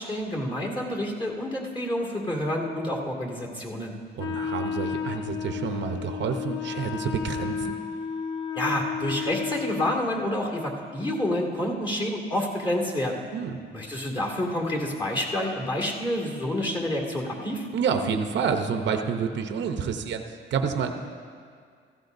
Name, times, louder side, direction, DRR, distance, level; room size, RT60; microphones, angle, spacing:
voice 1, 0.0-4.0 8.5-13.2 13.7-17.7, left 1 dB, 25° left, -2 dB, 2.3 m, -28 dB
Wind instrument woodwind instrument, 4.2-10.0, left 7 dB, 80° left, 0.8 m, -32 dB
voice 2, 4.2-7.8 13.3-13.6 17.7-20.2 20.5-20.9, right 6 dB, 65° right, 5 dB, 0.8 m, -28 dB
16.0 x 14.5 x 2.7 m, 2.1 s
cardioid pair, 90°, 20 cm